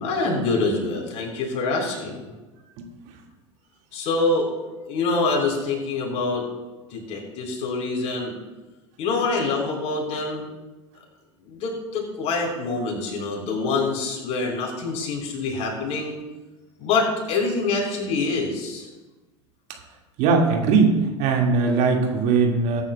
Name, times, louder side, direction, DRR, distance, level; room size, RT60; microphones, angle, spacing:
voice 1, 0.0-2.3 3.9-4.5 4.8-6.5 6.9-8.3 9.0-10.4 11.4-16.2 16.8-18.9, left 3 dB, 40° left, 0 dB, 3.9 m, -25 dB
voice 2, 20.2-22.8, right 4 dB, 45° right, 1 dB, 1.9 m, -20 dB
21.0 x 9.7 x 2.2 m, 1.1 s
figure-of-eight pair, 80°, 16 cm